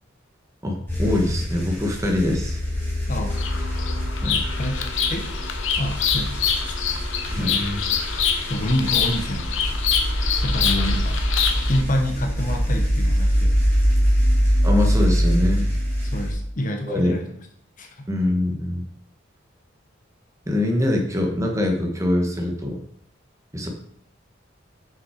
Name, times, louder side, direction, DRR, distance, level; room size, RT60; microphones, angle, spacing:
voice 1, 0.6-2.6 4.2-4.4 7.3-7.6 10.6-10.9 14.6-15.7 16.8-17.2 18.1-18.8 20.5-22.8 23.5-23.7, left 1 dB, 15° right, 2 dB, 1.2 m, -23 dB
sound 1, 0.9-16.3, equal, 10° left, 2.5 m, -23 dB
voice 2, 3.1-3.5 4.6-4.8 5.1-5.3 5.8-6.7 7.4-7.8 8.4-9.6 10.2-11.1 11.6-13.5 16.1-17.3 17.8-18.1, left 1 dB, 45° left, 3 dB, 0.9 m, -27 dB
Bird vocalization bird call bird song, 3.3-11.8, left 7 dB, 90° left, 0.9 m, -26 dB
6.5 x 5.5 x 4.9 m, 0.68 s
head